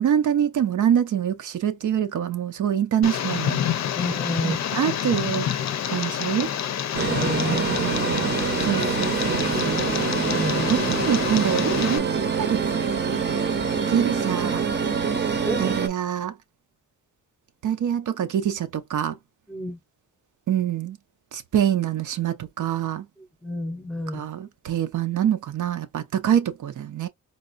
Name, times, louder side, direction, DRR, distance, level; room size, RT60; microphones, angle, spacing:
voice 1, 0.0-3.6 4.4-5.5 5.9-6.5 7.5-8.3 8.6-9.9 10.7-12.6 13.9-14.6 15.6-16.3 17.6-19.2 20.5-21.0 21.3-23.1 24.1-27.1, right 9 dB, 85° right, 0.7 m, -25 dB
Tick, 3.0-12.0, left 9 dB, 65° left, 0.5 m, -28 dB
voice 2, 3.9-4.6 6.9-7.6 10.3-10.8 15.5-15.7 19.5-19.8 23.4-24.3, equal, 5° left, 0.8 m, -30 dB
sound 1, 6.9-15.9, right 6 dB, 35° right, 0.7 m, -25 dB
4.2 x 2.4 x 2.5 m
wide cardioid pair, 175°, 30 cm